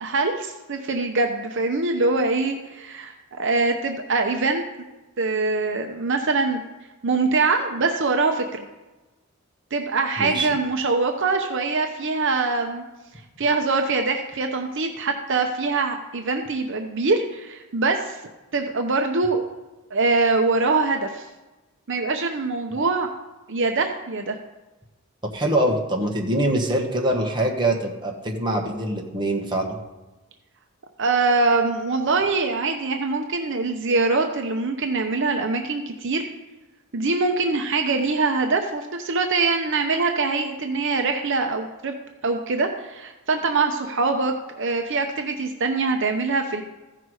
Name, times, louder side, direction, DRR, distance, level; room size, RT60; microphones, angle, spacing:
voice 1, 0.0-4.6 5.2-6.6 7.0-8.6 9.7-12.8 13.4-18.2 18.5-19.4 19.9-21.3 21.9-23.1 23.5-24.4 31.0-36.3 36.9-41.9 42.2-46.6, right 3 dB, 55° right, 4 dB, 0.8 m, -23 dB
voice 2, 10.2-10.5 25.3-29.8, right 1 dB, 20° right, 0 dB, 1.4 m, -24 dB
14.5 x 5.9 x 4.8 m, 1.1 s
head